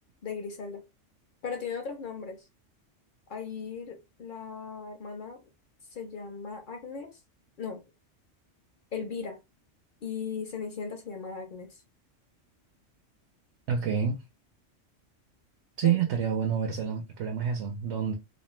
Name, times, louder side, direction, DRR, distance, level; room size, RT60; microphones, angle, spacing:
voice 1, 0.2-0.8 1.4-2.5 3.3-5.4 5.9-7.2 7.6-7.8 8.9-9.4 10.0-11.8 15.8-16.0, left 6 dB, 55° left, 0.6 m, -37 dB
voice 2, 13.7-14.2 15.8-18.1, right 8 dB, 70° right, 0.8 m, -28 dB
2.5 x 2.0 x 3.0 m
omnidirectional pair, 1.3 m